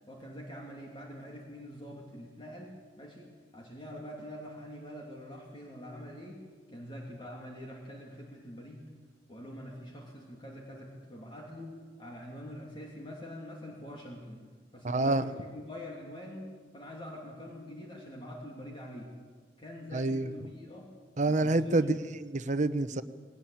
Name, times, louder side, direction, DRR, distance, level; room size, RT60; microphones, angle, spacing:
voice 1, 0.1-6.4 6.7-8.8 9.3-14.4 14.7-16.5 16.7-19.1 19.6-20.9 21.3-21.9, equal, 30° left, -2 dB, 3.0 m, -45 dB
voice 2, 14.8-15.2 19.9-20.3 21.2-23.0, right 2 dB, 45° right, 11 dB, 0.9 m, -27 dB
20.0 x 18.0 x 8.8 m, 1.5 s
head